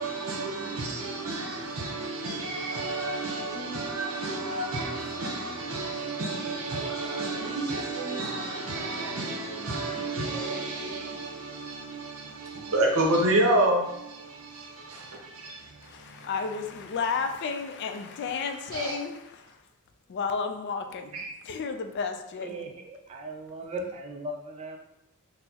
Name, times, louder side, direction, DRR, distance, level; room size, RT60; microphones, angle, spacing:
voice 1, 0.0-16.3 18.7-19.0 21.1-21.3, right 2 dB, 70° right, 0.7 m, -30 dB
voice 2, 15.8-19.6 20.1-22.7 23.6-23.7, left 5 dB, 50° left, 0.3 m, -32 dB
voice 3, 22.4-24.8, right 1 dB, 30° right, 0.3 m, -38 dB
4.3 x 2.0 x 2.8 m
head